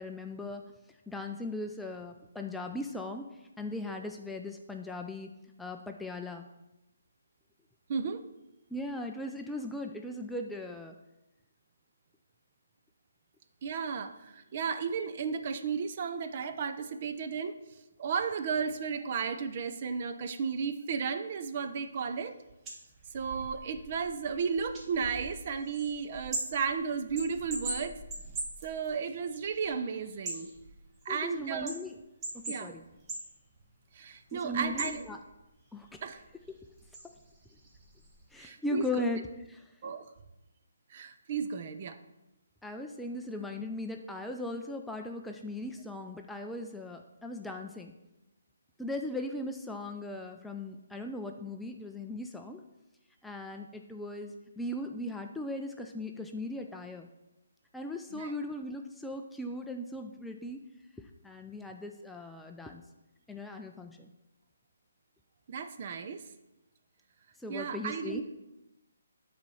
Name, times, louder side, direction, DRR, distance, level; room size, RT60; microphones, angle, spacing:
voice 1, 0.0-5.3 5.6-6.5 8.7-11.0 31.1-31.9 32.3-32.8 34.3-35.2 35.7-36.0 37.0-37.1 38.3-39.6 42.6-47.9 48.8-52.6 53.2-57.1 57.7-60.7 61.2-62.8 63.3-64.1 67.4-68.2, left 1 dB, 5° left, 3 dB, 0.4 m, -38 dB
voice 2, 7.9-8.2 13.6-17.6 18.0-22.3 23.1-28.0 28.6-30.5 31.0-31.7 32.5-32.7 33.9-35.1 36.0-36.2 38.4-39.0 39.8-40.1 40.9-42.0 58.1-58.3 65.5-66.2 67.5-68.2, right 6 dB, 40° right, 8 dB, 0.6 m, -34 dB
sound 1, 21.5-21.7 21.9-38.4, right 2 dB, 20° right, 1.2 m, -43 dB
8.7 x 4.2 x 5.5 m, 0.96 s
hypercardioid pair, 150°, 0 cm